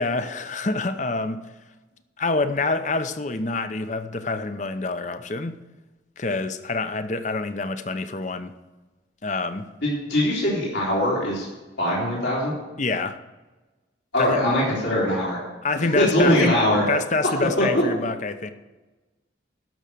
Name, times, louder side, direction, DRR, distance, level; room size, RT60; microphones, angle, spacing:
voice 1, 0.0-1.4 2.2-5.6 6.2-8.5 9.2-9.7 12.8-13.2 14.2-14.5 15.6-16.5 16.9-18.5, left 3 dB, 40° left, 10 dB, 0.7 m, -26 dB
voice 2, 9.8-11.5 11.8-12.5 14.1-15.4 15.9-16.8 17.6-17.8, left 1 dB, 80° left, -6 dB, 3.7 m, -21 dB
12.5 x 6.3 x 6.8 m, 1.2 s
head